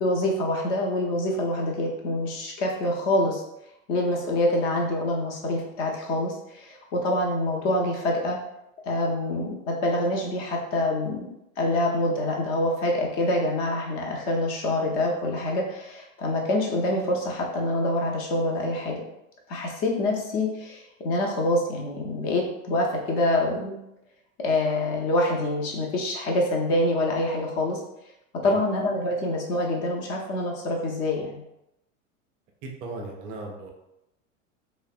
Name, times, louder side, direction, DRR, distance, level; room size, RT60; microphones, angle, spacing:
voice 1, 0.0-3.4 3.9-8.4 8.8-11.3 11.6-19.0 19.5-23.8 24.4-27.8 28.4-31.4, left 1 dB, 35° left, 0 dB, 0.6 m, -26 dB
voice 2, 32.6-33.7, right 2 dB, 25° right, 1 dB, 0.3 m, -37 dB
3.2 x 2.1 x 2.4 m, 0.85 s
figure-of-eight pair, 85°, 41 cm